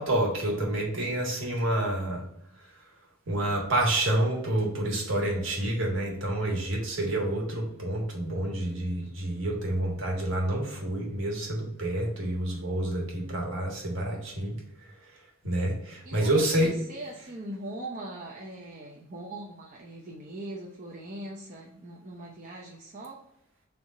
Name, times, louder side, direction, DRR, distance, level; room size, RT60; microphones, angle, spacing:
voice 1, 0.0-2.2 3.3-14.9 15.4-16.7, right 1 dB, 65° right, 0 dB, 1.4 m, -28 dB
voice 2, 16.0-23.2, right 1 dB, 40° right, -3 dB, 0.7 m, -41 dB
3.7 x 3.4 x 4.1 m, 0.78 s
head